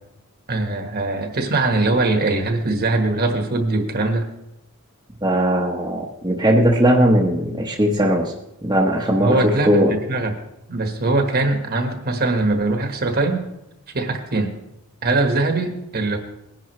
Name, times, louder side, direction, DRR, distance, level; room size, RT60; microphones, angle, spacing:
voice 1, 0.5-4.3 9.2-10.3 10.7-13.4 13.9-14.5 15.0-16.2, right 2 dB, 45° right, 5 dB, 1.4 m, -21 dB
voice 2, 5.2-8.3 8.6-9.9, equal, 20° right, -2 dB, 1.1 m, -18 dB
19.5 x 10.5 x 3.2 m, 0.84 s
head